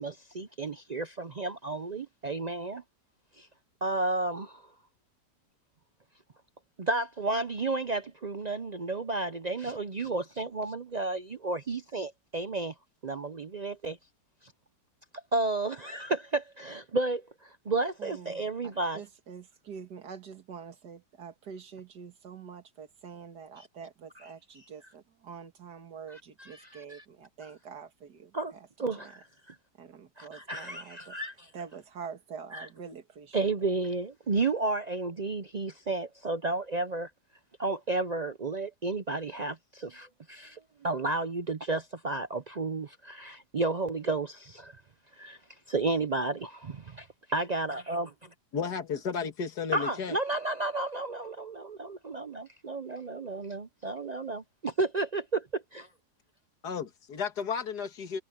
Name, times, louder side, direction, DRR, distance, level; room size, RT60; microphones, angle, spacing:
voice 1, 0.0-2.8 3.4-3.5 3.8-4.6 6.8-12.7 13.0-14.0 15.1-19.0 23.6-23.7 26.1-27.0 28.3-28.5 28.8-29.6 30.2-31.5 32.5-32.7 33.3-37.1 37.6-44.7 45.2-45.4 45.7-48.3 49.7-55.9, right 3 dB, 55° right, 0.4 m, -32 dB
voice 2, 18.0-29.1 29.8-31.2 31.5-33.7, right 6 dB, 80° right, 2.3 m, -46 dB
voice 3, 48.5-50.2 56.6-58.2, left 6 dB, 75° left, 2.3 m, -33 dB
omnidirectional pair, 1.7 m